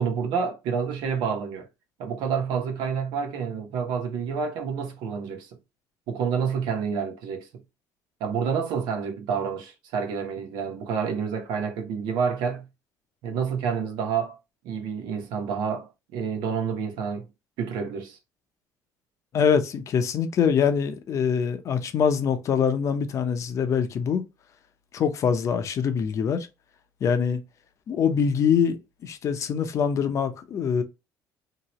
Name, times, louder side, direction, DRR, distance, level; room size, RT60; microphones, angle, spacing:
voice 1, 0.0-1.7 2.0-5.5 6.1-7.5 8.2-12.7 13.2-14.4 14.6-17.2 17.6-18.2, right 6 dB, 80° right, 1.0 m, -28 dB
voice 2, 19.3-24.2 24.9-26.5 27.0-27.4 27.9-30.8, left 7 dB, 45° left, 0.6 m, -24 dB
2.9 x 2.8 x 2.9 m
cardioid pair, 125°, 7 cm